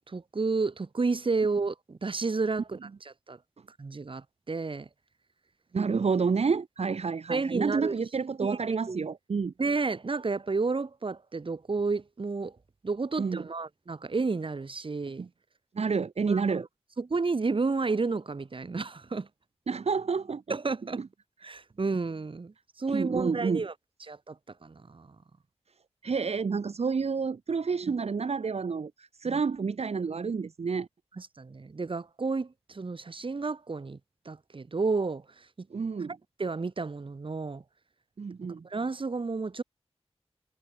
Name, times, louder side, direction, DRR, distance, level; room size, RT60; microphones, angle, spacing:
voice 1, 0.0-3.4 3.8-4.9 7.3-7.9 8.4-9.0 9.6-12.5 12.8-15.2 16.3-16.6 17.0-19.3 20.5-21.0 21.4-23.7 24.1-24.4 24.6-25.2 29.3-29.4 31.2-34.0 34.3-35.5 36.4-37.6 38.6-39.6, right 4 dB, 50° right, 2.4 m, -31 dB
voice 2, 5.7-9.5 13.2-13.5 15.2-15.3 15.7-16.7 19.7-20.6 21.0-21.1 22.9-23.7 26.0-30.9 35.7-36.1 38.2-38.7, right 5 dB, 70° right, 1.4 m, -29 dB
wide cardioid pair, 85°, 11 cm